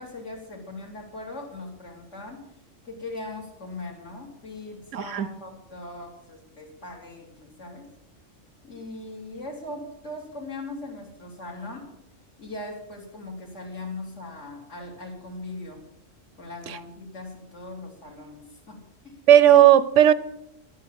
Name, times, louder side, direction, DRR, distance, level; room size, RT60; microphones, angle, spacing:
voice 1, 0.0-2.4 2.8-7.9 8.6-11.9 12.4-15.8 16.4-19.2, left 2 dB, 65° left, 3.2 m, -39 dB
voice 2, 4.9-5.3 16.7-16.8 19.3-20.1, right 11 dB, 70° right, 0.9 m, -15 dB
11.5 x 9.7 x 7.0 m
omnidirectional pair, 1.3 m